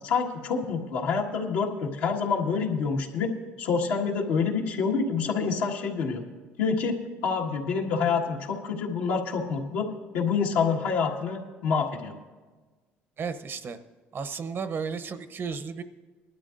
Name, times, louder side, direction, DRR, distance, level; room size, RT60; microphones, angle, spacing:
voice 1, 0.0-3.3 3.6-6.2 6.6-9.8 10.1-12.1, left 5 dB, 85° left, -1 dB, 1.7 m, -27 dB
voice 2, 13.2-13.8 14.1-15.8, right 5 dB, 50° right, 10 dB, 0.8 m, -33 dB
20.5 x 12.5 x 2.6 m, 1.3 s
supercardioid pair, 75°, 5 cm